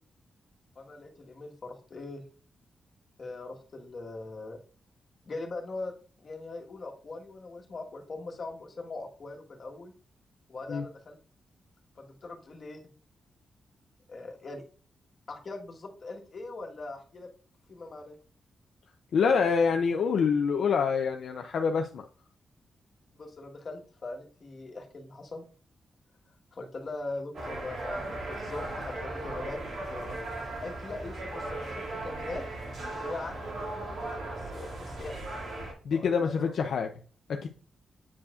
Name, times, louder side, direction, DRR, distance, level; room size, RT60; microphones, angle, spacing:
voice 1, 0.7-2.2 3.2-4.6 5.3-5.9 6.2-9.9 10.5-11.2 12.0-12.8 14.1-14.6 15.3-17.3 17.7-18.2 23.1-25.4 26.5-29.6 29.9-30.1 30.6-32.4 33.0-33.3 33.7-35.2 35.9-36.6, left 2 dB, 50° left, 2 dB, 1.5 m, -41 dB
voice 2, 19.1-22.0 35.8-36.9 37.3-37.5, left 5 dB, 75° left, 4 dB, 0.5 m, -26 dB
sound 1, 27.3-35.7, right 2 dB, 75° right, 2.4 m, -37 dB
8.4 x 4.7 x 2.5 m, 0.41 s
cardioid pair, 80°, 0 cm